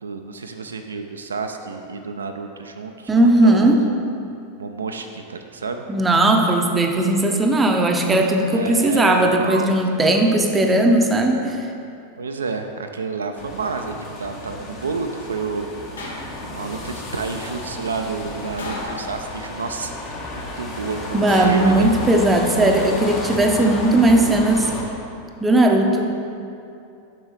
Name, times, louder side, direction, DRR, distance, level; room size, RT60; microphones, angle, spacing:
voice 1, 0.0-3.9 4.6-5.8 8.4-9.7 12.2-15.7 16.5-20.0 20.3-21.9, right 4 dB, 70° right, 5 dB, 0.3 m, -30 dB
voice 2, 3.1-3.8 5.9-11.6 21.1-24.7 25.4-26.2, right 1 dB, 15° right, 2 dB, 0.6 m, -17 dB
sound 1, 13.4-24.8, left 2 dB, 35° left, 1.0 m, -32 dB
sound 2, 16.0-16.7 18.6-19.5 21.3-22.4 23.8-24.3, left 2 dB, 70° left, 1.0 m, -34 dB
7.4 x 6.1 x 3.2 m, 2.6 s
figure-of-eight pair, 90°, 0 cm